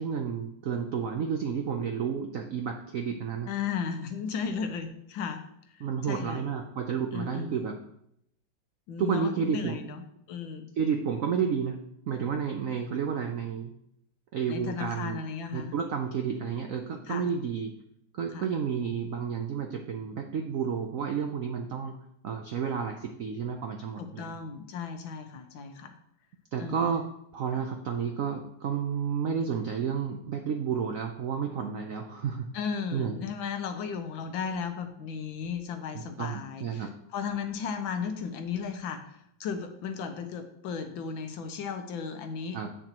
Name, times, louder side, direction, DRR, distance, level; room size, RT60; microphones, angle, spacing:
voice 1, 0.0-3.5 5.8-7.8 9.0-9.8 10.8-11.8 12.1-13.7 14.3-15.2 15.5-17.7 18.1-22.0 22.2-24.4 26.5-32.5 32.9-33.2 36.2-36.9 42.5-42.7, right 7 dB, 75° right, 4 dB, 0.7 m, -31 dB
voice 2, 3.5-5.4 5.7-6.4 7.1-7.6 8.9-10.7 14.5-15.7 17.1-17.3 18.3-18.5 24.0-25.9 26.6-26.8 27.5-27.6 32.5-42.6, left 6 dB, 80° left, 7 dB, 1.6 m, -35 dB
8.2 x 6.7 x 3.0 m, 0.74 s
omnidirectional pair, 2.1 m